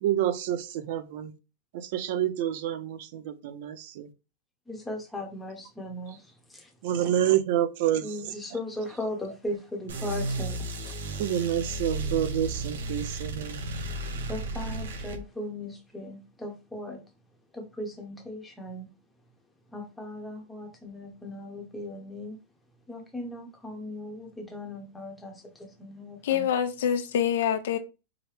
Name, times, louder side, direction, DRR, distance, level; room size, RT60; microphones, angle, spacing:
voice 1, 0.0-1.3 1.7-4.1 6.8-8.3 11.2-13.6, right 11 dB, 50° right, 0.7 m, -28 dB
voice 2, 4.7-6.2 6.5-6.7 8.0-10.9 14.3-17.0 17.5-18.9 19.7-22.4 22.9-26.5, left 1 dB, 5° left, 1.0 m, -38 dB
sound 1, 9.9-15.2, right 2 dB, 85° right, 1.6 m, -33 dB
voice 3, 26.2-27.8, left 9 dB, 70° left, 0.8 m, -26 dB
4.8 x 2.2 x 4.8 m
supercardioid pair, 160°, 0 cm